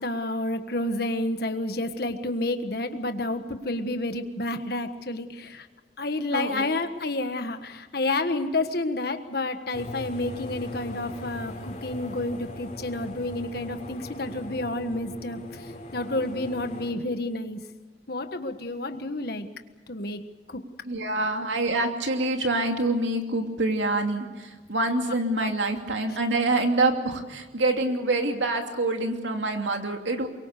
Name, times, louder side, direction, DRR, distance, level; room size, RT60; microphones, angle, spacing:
voice 1, 0.0-5.7 6.0-17.6 18.1-19.5 19.9-20.2 20.5-20.6 25.0-25.5 26.1-26.2, left 2 dB, 55° left, 8 dB, 1.5 m, -30 dB
voice 2, 6.3-6.6 20.9-30.3, right 2 dB, 85° right, 4 dB, 2.7 m, -26 dB
sound 1, 9.7-16.9, left 1 dB, 35° left, 4.2 m, -40 dB
23.5 x 23.0 x 6.7 m, 1.2 s
head